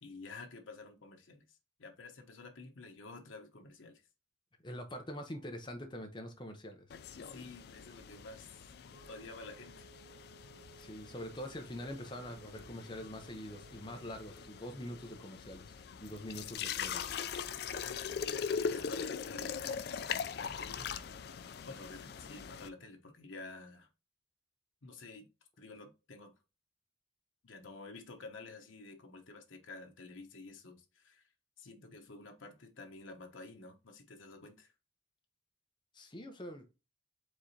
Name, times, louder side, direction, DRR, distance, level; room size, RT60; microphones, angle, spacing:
voice 1, 0.0-4.0 7.3-9.9 17.8-19.6 20.3-20.9 21.6-23.9 24.8-25.3 25.6-26.3 27.4-31.2 31.6-34.7, left 3 dB, 90° left, 0.9 m, -50 dB
voice 2, 4.6-6.9 10.8-17.1 35.9-36.7, equal, 25° left, 0.7 m, -44 dB
sound 1, 6.9-22.7, left 7 dB, 55° left, 0.3 m, -41 dB
Wind instrument woodwind instrument, 8.9-15.3, right 7 dB, 35° right, 0.7 m, -61 dB
4.8 x 3.7 x 2.7 m
head